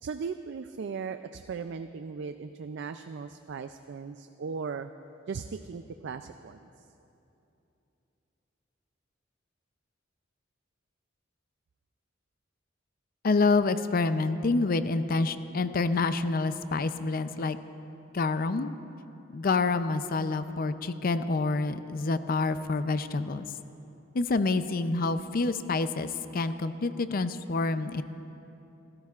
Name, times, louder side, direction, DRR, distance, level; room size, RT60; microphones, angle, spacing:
voice 1, 0.0-4.9 5.3-6.7, right 5 dB, 60° right, 9 dB, 0.4 m, -37 dB
voice 2, 13.2-17.6 18.1-18.7 19.3-23.5 24.1-28.0, left 3 dB, 45° left, 11 dB, 0.5 m, -27 dB
29.0 x 13.5 x 2.4 m, 2.9 s
head